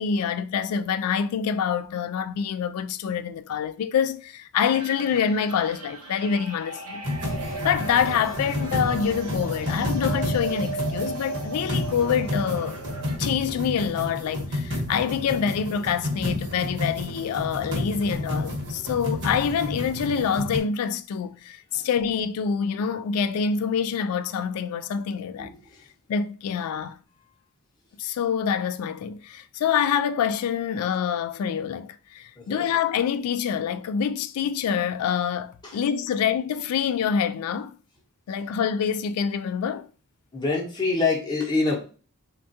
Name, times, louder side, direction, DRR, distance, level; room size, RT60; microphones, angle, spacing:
voice 1, 0.0-7.0 7.6-12.8 13.2-25.5 26.1-27.0 28.0-37.8 38.3-39.9, left 7 dB, 80° left, 0.3 m, -26 dB
sound 1, 4.6-13.2, right 4 dB, 85° right, 0.7 m, -36 dB
sound 2, 7.0-20.6, left 1 dB, 50° right, 1.0 m, -30 dB
sound 3, 7.2-9.4, right 2 dB, 20° right, 0.7 m, -45 dB
voice 2, 40.3-41.9, left 3 dB, 20° left, 0.7 m, -25 dB
3.5 x 2.2 x 2.6 m
head